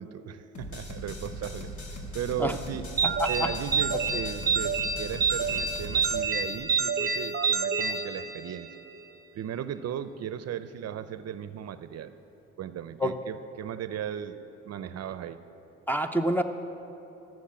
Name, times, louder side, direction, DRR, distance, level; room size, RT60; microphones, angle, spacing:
voice 1, 0.0-2.9 3.3-8.8 9.3-12.1 12.6-15.4, right 9 dB, 55° right, 12 dB, 0.5 m, -36 dB
sound 1, 0.5-6.2, equal, 75° left, 1.9 m, -39 dB
voice 2, 3.0-3.5 13.0-13.1 15.9-16.4, equal, 5° left, 8 dB, 0.6 m, -27 dB
sound 2, 3.0-8.7, right 5 dB, 30° right, 0.8 m, -28 dB
13.5 x 6.2 x 8.4 m, 3.0 s
cardioid pair, 90°, 30 cm